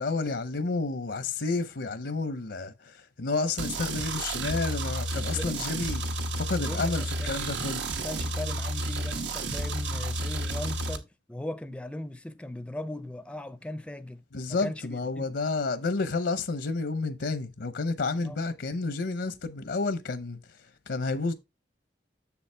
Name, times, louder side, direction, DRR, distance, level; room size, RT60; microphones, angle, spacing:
voice 1, 0.0-6.0 6.4-7.9 14.3-20.4 20.9-21.3, left 3 dB, 80° left, 0.7 m, -30 dB
sound 1, 3.6-11.0, right 1 dB, 85° right, 1.1 m, -31 dB
voice 2, 5.1-5.8 6.5-7.5 7.9-15.3 18.2-18.4, left 1 dB, 5° left, 0.4 m, -39 dB
7.1 x 7.0 x 3.3 m
head